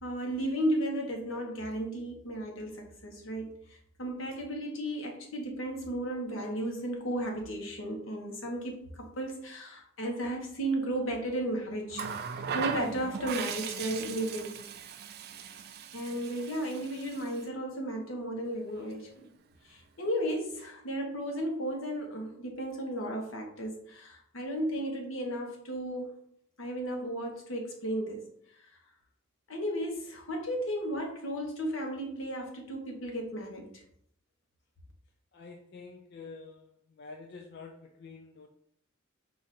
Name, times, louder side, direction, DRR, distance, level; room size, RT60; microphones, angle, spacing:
voice 1, 0.0-12.1 12.5-14.5 15.9-19.3 19.6-26.1 26.6-28.2 28.5-28.7 29.5-33.8, right 1 dB, 80° left, 1 dB, 1.1 m, -34 dB
Water tap faucet, 11.9-17.5 18.7-18.9, right 6 dB, 50° right, 0.3 m, -38 dB
voice 2, 35.3-36.7 37.0-38.5, left 4 dB, 55° left, 3 dB, 0.4 m, -47 dB
4.7 x 2.5 x 4.2 m, 0.68 s
head